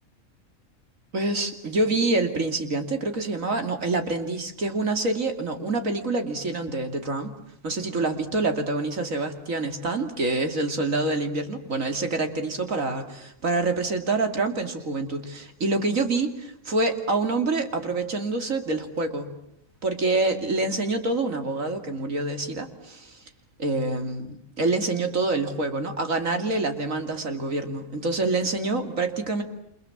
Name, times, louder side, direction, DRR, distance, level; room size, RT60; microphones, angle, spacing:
voice 1, 1.1-7.3 7.6-19.3 19.8-23.2 23.6-29.4, right 2 dB, 75° right, 6 dB, 3.2 m, -26 dB
29.0 x 27.0 x 7.3 m, 0.74 s
omnidirectional pair, 1.4 m